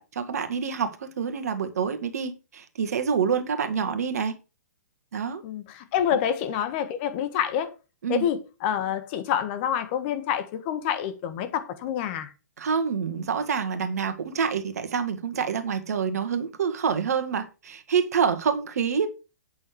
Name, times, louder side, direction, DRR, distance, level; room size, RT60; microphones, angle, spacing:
voice 1, 0.0-4.4 5.1-5.4 8.0-8.3 12.6-19.1, right 6 dB, 65° right, 1.6 m, -27 dB
voice 2, 5.4-7.7 8.1-12.3, left 9 dB, 40° left, 1.6 m, -27 dB
8.5 x 6.6 x 4.9 m
hypercardioid pair, 120°, 9 cm